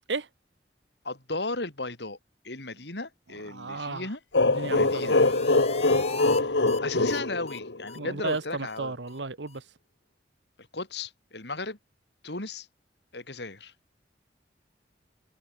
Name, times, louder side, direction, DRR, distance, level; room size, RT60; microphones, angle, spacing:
voice 1, 1.0-2.2 2.4-4.2 4.7-5.2 6.3-6.5 6.8-9.0 10.7-11.8 12.2-12.7 13.1-13.7, left 3 dB, 70° left, 3.8 m, -35 dB
voice 2, 3.5-4.1 4.5-5.1 7.9-9.6, right 3 dB, 85° right, 1.4 m, -34 dB
sound 1, 4.3-8.0, left 2 dB, 85° left, 1.6 m, -23 dB
sound 2, 4.4-6.4 6.7-6.8 7.1-7.2 7.5-7.6 7.9-8.0 8.3-8.4 8.7-8.8 9.1-9.2 9.5-9.6, left 4 dB, 35° left, 3.5 m, -38 dB
head